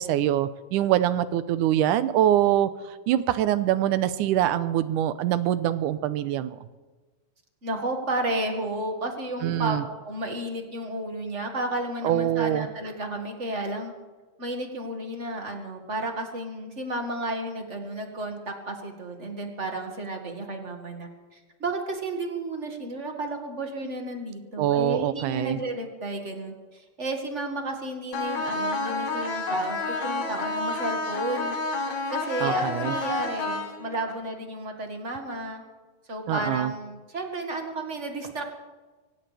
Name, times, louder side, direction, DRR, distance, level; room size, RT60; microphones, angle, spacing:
voice 1, 0.0-2.7 3.1-6.6 9.4-9.8 12.0-12.7 24.6-25.6 32.4-32.9 36.3-36.7, right 12 dB, 80° right, 13 dB, 2.2 m, -24 dB
voice 2, 7.6-9.8 10.0-13.9 14.4-35.6 36.1-38.5, right 2 dB, 30° right, 3 dB, 1.6 m, -32 dB
sound 1, 28.1-34.1, left 3 dB, 60° left, 2.8 m, -29 dB
24.0 x 17.0 x 3.4 m, 1.3 s
omnidirectional pair, 3.8 m